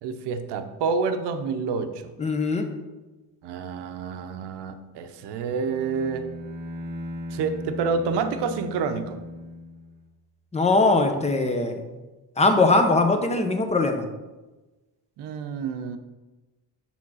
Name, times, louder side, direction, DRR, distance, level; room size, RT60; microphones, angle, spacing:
voice 1, 0.0-2.1 3.4-6.2 7.3-9.2 15.2-16.0, right 5 dB, 75° right, 8 dB, 0.8 m, -28 dB
voice 2, 2.2-2.7 10.5-11.8 12.4-14.0, left 3 dB, 15° left, 5 dB, 0.6 m, -21 dB
Bowed string instrument, 5.4-10.2, left 1 dB, 25° right, 0.8 m, -37 dB
7.2 x 3.6 x 6.1 m, 1.2 s
cardioid pair, 140°, 41 cm